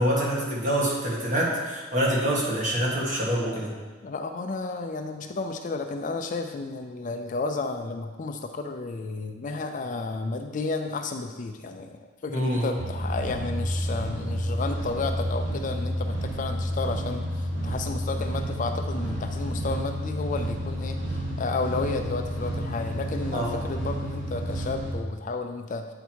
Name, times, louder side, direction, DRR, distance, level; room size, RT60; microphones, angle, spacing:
voice 1, 0.0-3.7 12.3-12.8 23.3-23.6, equal, 40° right, -4 dB, 1.7 m, -26 dB
voice 2, 4.0-25.9, left 3 dB, 40° left, 6 dB, 0.4 m, -32 dB
sound 1, 12.8-24.9, equal, 60° right, 1.5 m, -30 dB
8.3 x 4.5 x 4.6 m, 1.3 s
head